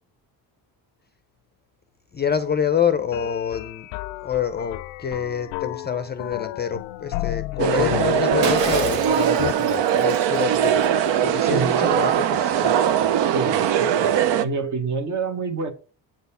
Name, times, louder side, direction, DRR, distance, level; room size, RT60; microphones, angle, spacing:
voice 1, 2.1-3.9 4.2-10.9 11.2-12.8, left 7 dB, 25° left, 0.5 m, -27 dB
sound 1, 3.1-9.5, left 17 dB, 80° left, 0.5 m, -31 dB
sound 2, 7.6-14.5, right 9 dB, 70° right, 0.8 m, -21 dB
Shatter, 8.4-11.1, right 6 dB, 90° right, 1.7 m, -32 dB
voice 2, 11.4-12.0 13.2-15.7, right 4 dB, 40° right, 1.2 m, -28 dB
8.8 x 4.1 x 5.5 m
cardioid pair, 135°, 44 cm